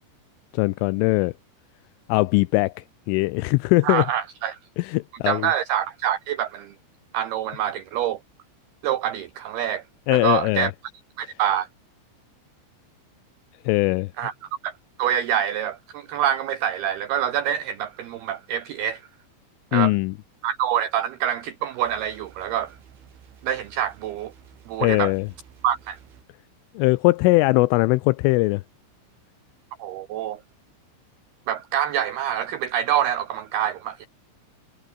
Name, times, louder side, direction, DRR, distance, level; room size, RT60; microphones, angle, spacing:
voice 1, 0.5-1.3 2.1-4.1 4.8-5.5 10.1-10.7 13.7-14.1 19.7-20.1 24.8-25.3 26.8-28.6, left 23 dB, 85° left, 3.0 m, -20 dB
voice 2, 3.8-4.6 5.2-6.7 7.1-8.2 8.8-9.8 10.1-10.7 11.2-11.7 14.2-14.3 14.6-14.7 15.0-19.0 19.7-19.9 20.4-22.8 23.4-24.3 24.7-25.1 25.6-26.0 29.8-30.4 31.5-34.1, right 10 dB, 85° right, 2.3 m, -26 dB
sound 1, 21.8-26.2, right 8 dB, 65° right, 5.8 m, -51 dB
omnidirectional pair, 6.0 m